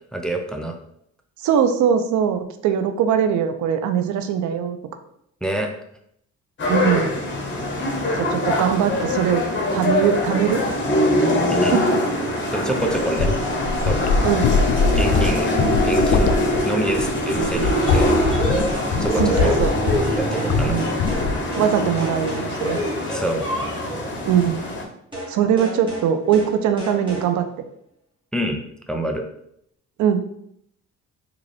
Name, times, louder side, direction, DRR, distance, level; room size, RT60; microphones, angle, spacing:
voice 1, 0.1-0.8 5.4-5.7 11.6-11.8 12.5-13.3 13.8-14.0 14.9-15.5 15.8-16.3 16.6-18.1 19.0-19.6 20.2-20.8 23.1-23.4 28.3-28.6 28.9-29.3, right 1 dB, 5° left, 3 dB, 0.5 m, -26 dB
voice 2, 1.4-4.8 6.7-7.1 8.2-9.4 9.7-10.6 11.7-12.0 14.2-14.5 19.2-19.7 20.7-20.9 21.6-22.8 24.3-24.6 25.3-27.4 30.0-30.2, right 8 dB, 75° right, 8 dB, 0.5 m, -21 dB
sound 1, 6.6-24.8, left 1 dB, 40° left, 1.0 m, -23 dB
sound 2, 13.0-20.2 20.5-20.7 21.0-21.5, left 5 dB, 60° left, 0.5 m, -22 dB
sound 3, 17.8-20.5 20.8-21.3 21.5-21.7 22.0-24.1 25.1-25.3 25.6-26.1 26.3-26.5 26.8-27.3, equal, 15° right, 1.4 m, -28 dB
3.7 x 2.4 x 3.3 m, 0.72 s
cardioid pair, 90°, 30 cm